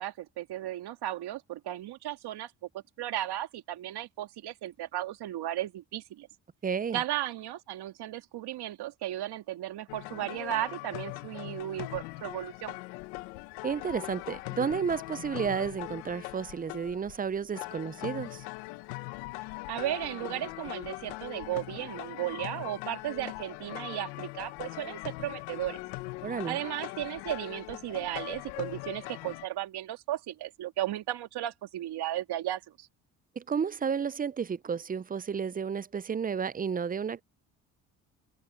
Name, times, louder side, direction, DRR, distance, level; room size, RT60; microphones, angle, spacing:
voice 1, 0.0-6.3 6.9-12.8 19.7-25.8 26.4-32.9, right 13 dB, 70° right, 2.5 m, -35 dB
voice 2, 6.6-7.0 13.6-18.4 26.2-26.6 33.4-37.2, right 6 dB, 20° right, 0.5 m, -32 dB
sound 1, 9.9-29.5, left 23 dB, 90° left, 0.9 m, -41 dB
supercardioid pair, 65°, 41 cm